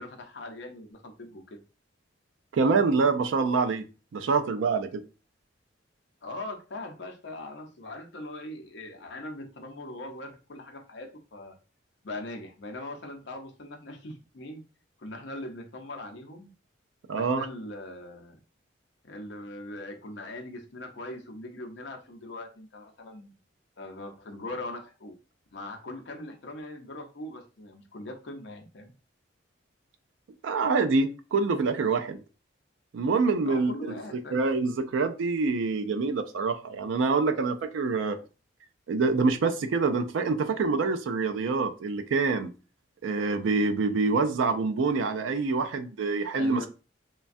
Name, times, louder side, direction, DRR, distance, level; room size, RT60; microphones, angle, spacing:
voice 1, 0.0-1.6 6.2-11.6 12.0-14.6 15.0-16.5 17.1-18.4 19.0-23.4 23.8-25.2 25.5-28.9 33.4-34.4 46.4-46.7, left 1 dB, 60° left, 0.6 m, -41 dB
voice 2, 2.5-3.8 4.1-5.0 17.1-17.5 30.4-32.2 32.9-33.7 34.1-38.2 38.9-42.5 43.0-46.6, right 4 dB, 75° right, 0.4 m, -26 dB
3.2 x 2.2 x 2.5 m
head